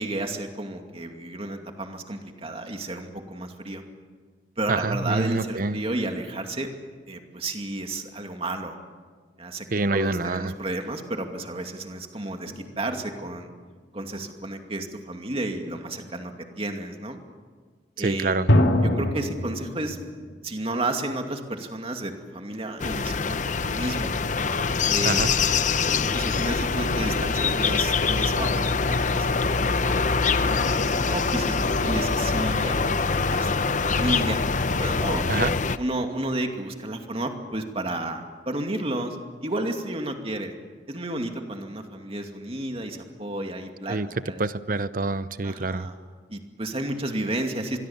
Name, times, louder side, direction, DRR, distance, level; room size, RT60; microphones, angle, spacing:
voice 1, 0.0-3.8 4.6-6.7 7.1-8.8 9.4-13.5 13.9-17.2 18.0-18.4 18.8-20.0 20.4-24.1 24.9-25.4 25.9-30.0 30.4-34.4 34.8-35.2 35.8-39.2 39.4-40.5 40.9-44.0 44.3-44.4 45.4-46.0 46.3-47.8, right 1 dB, 35° right, 4 dB, 2.5 m, -32 dB
voice 2, 4.7-5.8 9.7-10.5 18.0-18.5 25.0-25.3 35.3-35.5 43.9-44.1 44.4-45.9, right 3 dB, 50° right, 14 dB, 0.8 m, -26 dB
sound 1, 12.4-13.8 18.5-20.3, left 1 dB, 80° left, 2.5 m, -24 dB
sound 2, 22.8-35.8, left 4 dB, 45° left, 0.8 m, -24 dB
26.5 x 22.0 x 7.3 m, 1.5 s
head